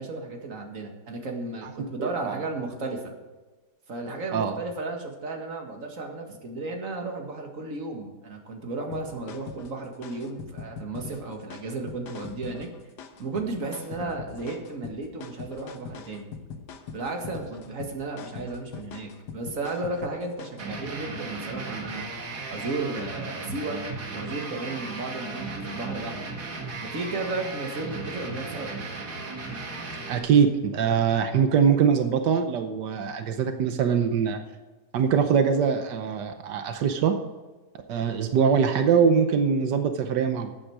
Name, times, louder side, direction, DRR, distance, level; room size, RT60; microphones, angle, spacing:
voice 1, 0.0-3.1 3.9-12.7 13.2-16.3 16.9-23.8 24.1-26.4 26.8-28.7, right 3 dB, 50° right, 2 dB, 2.2 m, -34 dB
voice 2, 1.8-2.4 4.3-4.6 30.1-34.4 34.9-37.1 37.9-40.5, right 7 dB, 90° right, 7 dB, 1.5 m, -23 dB
sound 1, 8.9-20.7, left 6 dB, 80° left, 1.6 m, -42 dB
sound 2, 20.6-30.2, right 3 dB, 70° right, 2.4 m, -36 dB
13.5 x 9.0 x 4.8 m, 1.2 s
omnidirectional pair, 1.8 m